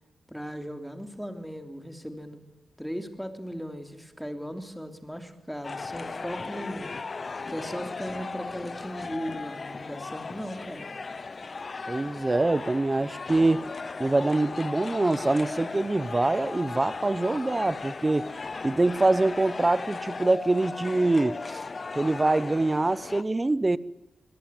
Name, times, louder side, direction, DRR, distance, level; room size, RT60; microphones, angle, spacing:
voice 1, 0.3-2.4 2.8-6.9 7.5-10.9, equal, ahead, 3.1 m, -37 dB
sound 1, 5.6-23.2, left 4 dB, 40° left, 0.9 m, -37 dB
voice 2, 11.9-13.6 14.0-18.3 18.6-21.7 21.9-23.8, right 2 dB, 20° right, 0.9 m, -24 dB
24.5 x 18.0 x 9.3 m
wide cardioid pair, 100°, 0 cm